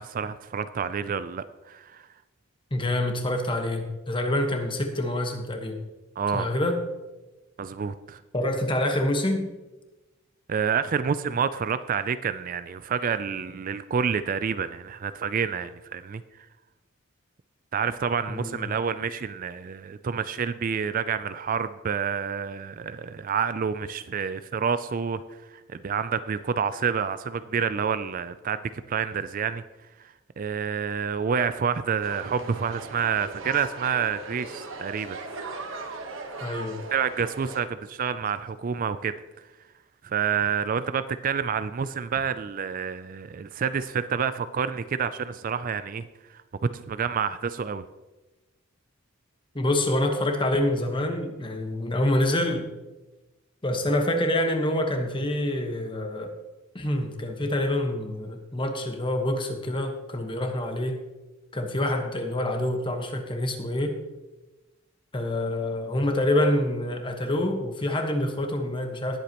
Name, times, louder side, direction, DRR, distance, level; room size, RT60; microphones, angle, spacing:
voice 1, 0.0-2.1 6.2-6.5 7.6-8.2 10.5-16.2 17.7-29.6 30.4-35.2 36.9-39.1 40.0-46.1 46.3-46.4 46.7-47.8, right 6 dB, 40° right, 12 dB, 0.4 m, -28 dB
voice 2, 2.7-5.8 6.3-6.8 8.3-9.5 18.3-18.6 36.4-36.8 49.5-52.7 53.6-56.3 56.7-61.0 61.5-63.9 65.1-69.2, left 1 dB, 25° left, 4 dB, 1.2 m, -26 dB
sound 1, 32.0-37.6, right 3 dB, 65° right, 1.3 m, -38 dB
19.0 x 8.1 x 3.0 m, 1.1 s
head